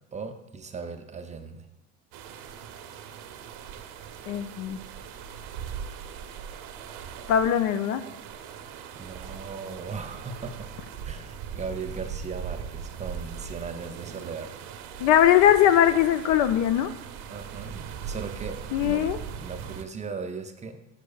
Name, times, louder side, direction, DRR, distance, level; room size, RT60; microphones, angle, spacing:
voice 1, 0.1-1.7 8.9-10.7 11.1-14.5 17.3-19.0 19.4-20.8, right 5 dB, 20° right, 6 dB, 0.5 m, -38 dB
sound 1, 2.1-19.8, right 7 dB, 55° right, 0.8 m, -40 dB
voice 2, 4.3-4.8 7.3-8.0 15.0-16.9 18.7-19.2, left 10 dB, 45° left, 12 dB, 0.4 m, -20 dB
10.5 x 4.6 x 2.3 m, 0.89 s
hypercardioid pair, 70°, 40 cm